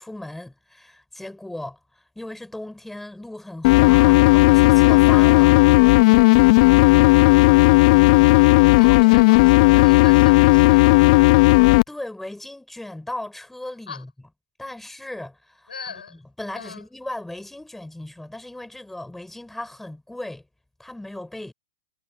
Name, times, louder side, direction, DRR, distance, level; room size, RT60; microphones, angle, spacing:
voice 1, 0.0-1.8 2.2-5.6 11.9-14.1 14.6-20.4 20.8-21.5, left 1 dB, 5° left, 5.7 m, -37 dB
sound 1, 3.6-11.8, left 24 dB, 50° left, 0.5 m, -14 dB
voice 2, 8.6-11.3 13.9-14.0 15.7-16.2 16.6-16.8, left 6 dB, 90° left, 7.8 m, -40 dB
hypercardioid pair, 110°, 5 cm